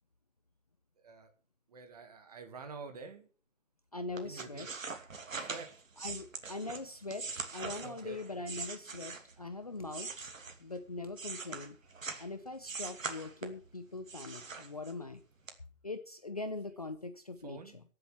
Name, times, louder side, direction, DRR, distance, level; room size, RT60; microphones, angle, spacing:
voice 1, 1.0-1.3 1.7-3.3 4.1-4.8 5.3-5.7 7.8-8.2 17.4-17.8, right 4 dB, 30° right, 8 dB, 2.0 m, -48 dB
voice 2, 3.9-4.7 6.0-10.1 10.6-11.8 12.2-15.2 15.8-17.8, left 3 dB, 30° left, 9 dB, 0.6 m, -42 dB
sound 1, 4.2-9.4 9.9-12.3 12.6-13.7 14.1-15.1 15.5-15.6, right 4 dB, 75° right, 2.9 m, -42 dB
15.5 x 7.7 x 7.4 m, 0.39 s
hypercardioid pair, 170°, 40 cm